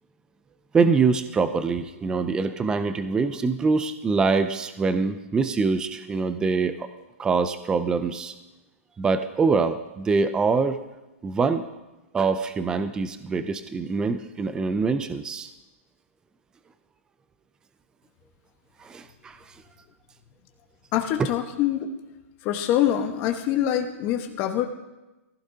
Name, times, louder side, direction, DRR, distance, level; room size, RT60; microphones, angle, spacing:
voice 1, 0.7-6.9 7.2-8.3 9.0-10.8 11.2-11.6 12.1-15.5 18.8-19.4, right 4 dB, 10° right, 11 dB, 0.4 m, -24 dB
voice 2, 20.9-21.9 22.4-24.7, left 11 dB, 30° left, 4 dB, 1.3 m, -24 dB
18.0 x 15.5 x 2.8 m, 1.0 s
hypercardioid pair, 150°, 8 cm